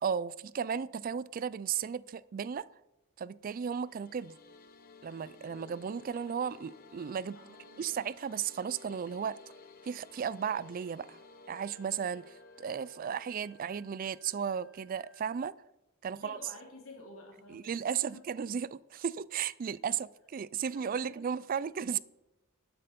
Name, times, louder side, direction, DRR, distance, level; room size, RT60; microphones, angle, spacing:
voice 1, 0.0-2.7 3.2-4.4 5.0-7.4 7.8-9.4 9.8-11.2 11.5-15.5 16.0-16.4 17.5-22.0, right 7 dB, 40° right, 0.3 m, -35 dB
sound 1, 3.6-13.8, left 3 dB, 45° left, 1.2 m, -55 dB
voice 2, 7.3-8.0 16.1-17.7 18.1-18.2 19.9-20.0 20.7-21.2, left 2 dB, 75° left, 2.9 m, -51 dB
Wind instrument woodwind instrument, 11.5-15.4, left 2 dB, 5° right, 3.3 m, -66 dB
12.0 x 7.8 x 5.2 m
head